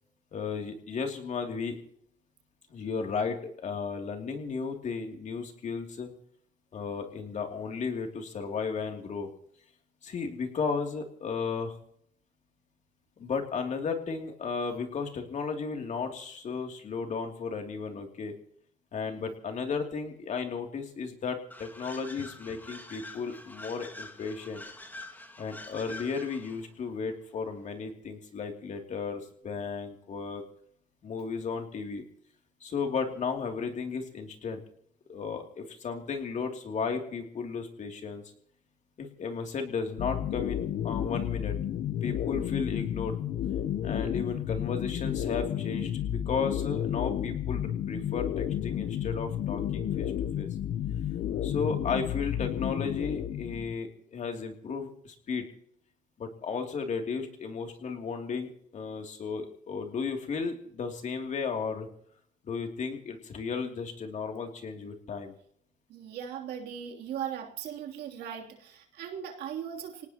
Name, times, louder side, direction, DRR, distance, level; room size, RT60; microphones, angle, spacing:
voice 1, 0.3-1.8 2.7-6.1 6.7-9.3 10.0-11.7 13.2-18.3 18.9-24.6 25.4-30.4 31.0-32.0 32.6-34.6 35.1-38.2 39.0-41.6 42.0-43.2 43.8-50.5 51.4-55.5 56.2-61.9 62.5-65.3, left 5 dB, 45° left, 3 dB, 2.9 m, -34 dB
sound 1, 21.5-26.7, left 2 dB, 10° left, 2.1 m, -46 dB
sound 2, 40.0-53.7, left 10 dB, 60° left, 0.9 m, -32 dB
voice 2, 65.9-70.1, right 9 dB, 75° right, 1 dB, 3.2 m, -38 dB
25.5 x 18.5 x 3.0 m, 0.66 s
cardioid pair, 110°, 17 cm